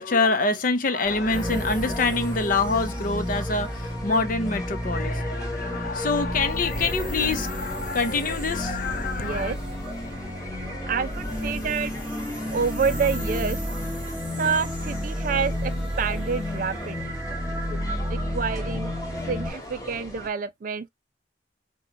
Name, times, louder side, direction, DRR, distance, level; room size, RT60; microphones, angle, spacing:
voice 1, 0.0-9.5, left 3 dB, 45° left, 0.6 m, -26 dB
sound 1, 1.0-20.3, equal, 20° left, 1.1 m, -39 dB
sound 2, 1.3-19.5, left 1 dB, 5° right, 1.6 m, -31 dB
voice 2, 9.2-9.6 10.9-11.9 12.5-13.6 14.4-15.7 16.0-17.0 18.1-18.9 19.3-20.9, right 5 dB, 45° right, 0.3 m, -27 dB
5.6 x 2.2 x 2.8 m
head